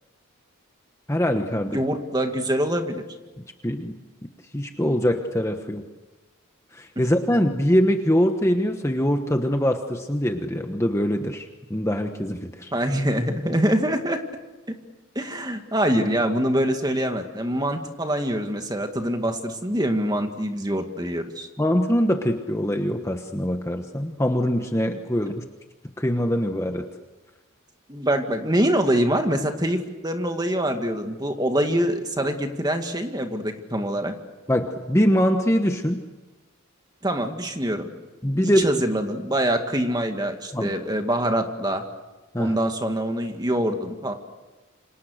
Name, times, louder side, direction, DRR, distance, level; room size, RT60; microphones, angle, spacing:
voice 1, 1.1-1.8 3.6-3.9 4.5-5.8 6.7-12.7 21.6-25.4 26.0-26.9 34.5-36.0 38.2-38.7 40.5-40.7 42.3-42.6, equal, 10° left, 5 dB, 1.1 m, -23 dB
voice 2, 1.7-3.0 7.0-7.1 12.7-14.2 15.2-21.5 27.9-34.1 37.0-37.9 38.4-41.8 42.4-44.1, right 1 dB, 20° right, 5 dB, 2.1 m, -24 dB
28.5 x 26.5 x 6.5 m, 1.2 s
head